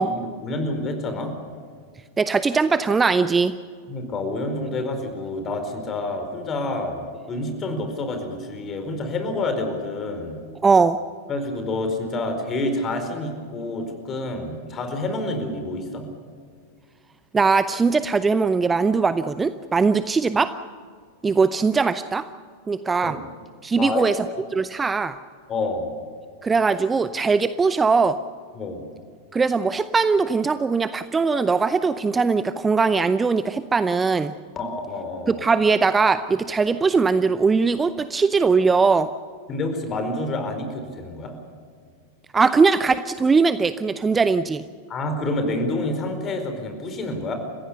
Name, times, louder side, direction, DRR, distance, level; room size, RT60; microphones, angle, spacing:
voice 1, 0.0-1.3 3.9-10.4 11.3-16.0 23.0-23.3 23.8-24.1 25.5-25.9 28.5-28.8 34.6-35.4 39.5-41.3 44.9-47.3, left 2 dB, 25° left, 6 dB, 4.6 m, -28 dB
voice 2, 2.2-3.5 10.6-11.0 17.3-20.5 21.2-22.2 22.7-23.2 23.6-24.2 24.5-25.2 26.4-28.2 29.3-34.3 35.3-39.1 42.3-44.6, right 4 dB, 15° right, 13 dB, 0.6 m, -20 dB
30.0 x 16.0 x 6.9 m, 2.1 s
figure-of-eight pair, 90°, 0 cm